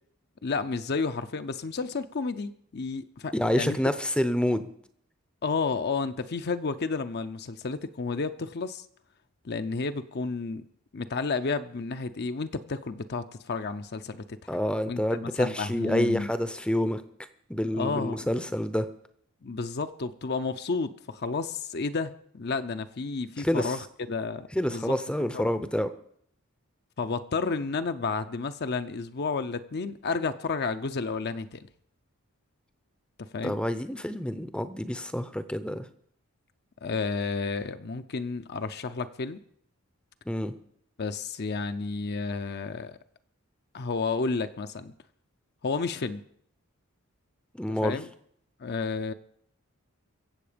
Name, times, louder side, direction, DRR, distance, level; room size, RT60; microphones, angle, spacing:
voice 1, 0.4-3.8 5.4-8.8 9.4-10.6 10.9-14.4 14.9-16.3 17.8-18.3 19.4-23.8 24.1-25.5 27.0-31.7 33.2-33.6 36.8-39.4 41.0-43.0 43.7-44.9 45.6-46.2 47.7-48.1 48.6-49.1, left 4 dB, 50° left, 9 dB, 0.6 m, -31 dB
voice 2, 3.3-4.7 14.5-17.0 17.5-18.9 23.4-23.8 24.5-25.9 33.4-35.9 40.3-40.5 47.6-48.0, equal, 5° left, 11 dB, 0.6 m, -28 dB
23.0 x 7.8 x 5.1 m, 0.67 s
head